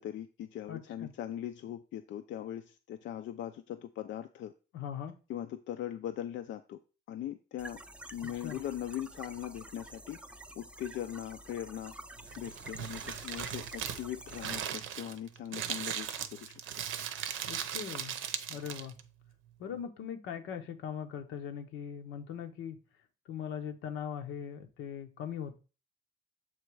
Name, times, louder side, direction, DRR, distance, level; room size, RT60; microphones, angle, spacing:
voice 1, 0.0-4.5 5.3-6.8 7.1-7.8 8.1-10.2 10.6-11.9 12.4-16.5 17.0-17.2, left 11 dB, 70° left, 8 dB, 0.5 m, -40 dB
voice 2, 0.7-1.1 4.7-5.2 8.2-8.6 17.5-18.2 18.5-19.0 19.6-22.8 23.3-25.6, left 8 dB, 90° left, 6 dB, 0.9 m, -40 dB
sound 1, 7.6-14.7, right 1 dB, 5° right, 0.5 m, -48 dB
Crumpling crinkling, 12.2-19.0, right 9 dB, 80° right, 0.7 m, -38 dB
7.4 x 3.0 x 4.7 m, 0.34 s
cardioid pair, 90°, 20 cm